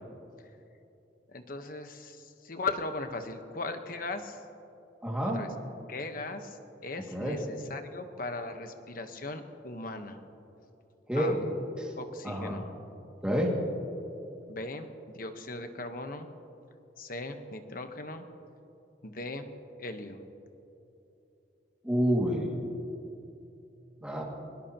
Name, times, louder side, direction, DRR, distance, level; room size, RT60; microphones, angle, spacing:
voice 1, 1.3-4.4 5.2-5.5 5.9-10.2 11.1-11.4 11.7-12.7 14.5-16.3 17.0-18.3 19.0-19.5 19.8-20.2, left 3 dB, 50° left, 7 dB, 1.2 m, -38 dB
voice 2, 5.0-5.4 7.1-7.4 11.1-11.4 11.8-11.9 12.2-12.6 13.2-13.6 21.8-22.5 24.0-24.2, equal, 5° right, -2 dB, 2.2 m, -28 dB
23.0 x 20.0 x 3.0 m, 2.9 s
head